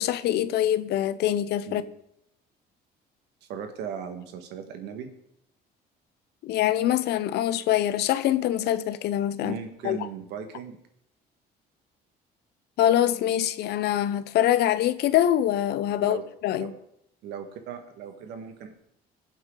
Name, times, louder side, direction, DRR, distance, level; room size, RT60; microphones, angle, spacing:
voice 1, 0.0-1.8 6.4-9.6 9.8-10.0 12.8-16.2 16.4-16.7, left 12 dB, 75° left, 0.7 m, -24 dB
voice 2, 3.5-5.1 9.4-10.8 16.0-16.2 16.6-16.8 17.2-18.7, right 7 dB, 85° right, 1.7 m, -37 dB
20.5 x 7.8 x 3.9 m
cardioid pair, 110°, 17 cm